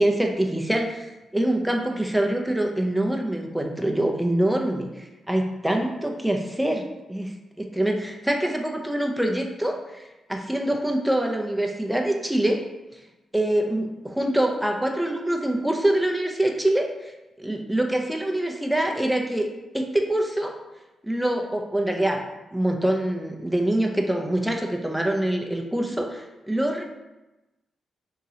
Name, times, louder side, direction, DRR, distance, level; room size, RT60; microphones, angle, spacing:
voice 1, 0.0-6.8 7.1-12.6 12.9-13.0 13.3-19.5 19.7-20.5 21.0-22.3 22.5-26.8, right 1 dB, 5° right, 2 dB, 0.7 m, -25 dB
3.7 x 2.9 x 2.8 m, 1.0 s
supercardioid pair, 50°, 0 cm